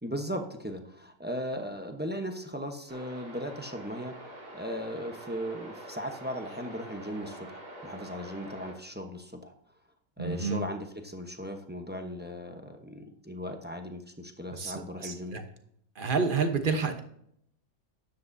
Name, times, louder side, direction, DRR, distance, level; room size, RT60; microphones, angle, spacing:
voice 1, 0.0-9.5 10.2-15.4, equal, 10° right, 4 dB, 0.6 m, -37 dB
sound 1, 2.9-8.7, right 1 dB, 75° right, 3.1 m, -45 dB
voice 2, 10.2-10.6 14.5-14.7 15.0-15.4 16.0-17.0, right 4 dB, 35° right, 6 dB, 1.0 m, -29 dB
13.0 x 10.0 x 2.7 m, 0.70 s
omnidirectional pair, 1.8 m